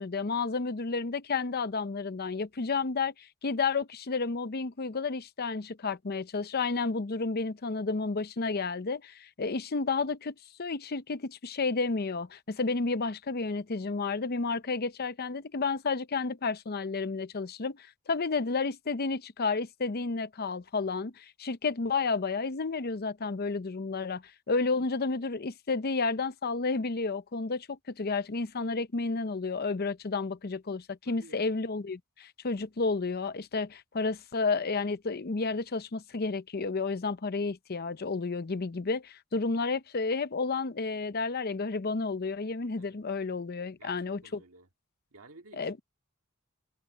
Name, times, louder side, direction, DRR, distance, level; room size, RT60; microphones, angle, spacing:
voice 1, 0.0-44.4 45.5-45.8, left 4 dB, 45° left, 0.7 m, -31 dB
voice 2, 31.0-31.4 42.8-43.0 43.8-44.0 44.2-44.7 45.1-45.8, right 3 dB, 75° right, 2.2 m, -54 dB
head